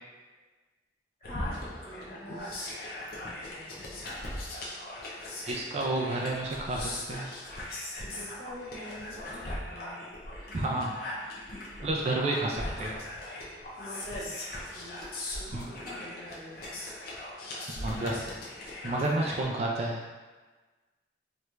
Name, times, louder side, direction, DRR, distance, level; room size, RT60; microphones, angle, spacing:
sound 1, 1.2-19.4, left 1 dB, 55° left, 0.6 m, -39 dB
voice 1, 1.2-2.5 3.2-3.8 8.0-9.4 9.7-10.0 13.8-14.3 14.7-15.0 15.4-15.5 15.8-16.8, equal, 35° left, -10 dB, 1.3 m, -44 dB
voice 2, 5.5-7.3 10.5-11.0 11.8-12.9 15.5-15.7 17.8-18.2 18.8-20.0, right 2 dB, 35° right, -2 dB, 0.3 m, -30 dB
3.0 x 2.4 x 3.2 m, 1.3 s
head